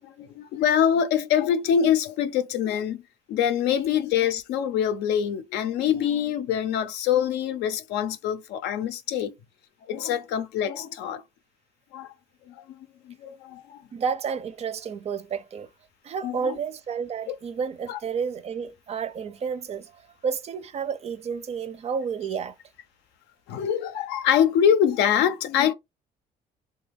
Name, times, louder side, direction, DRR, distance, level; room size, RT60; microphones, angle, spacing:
voice 1, 0.0-3.0 3.3-9.3 9.9-11.2 11.9-12.1 12.5-13.8 16.2-16.5 17.3-17.4 17.9-18.0 23.5-25.7, left 9 dB, 85° left, 0.5 m, -24 dB
voice 2, 13.9-15.7 16.0-22.5, right 6 dB, 40° right, 0.4 m, -31 dB
3.1 x 2.3 x 3.4 m
cardioid pair, 110°, 17 cm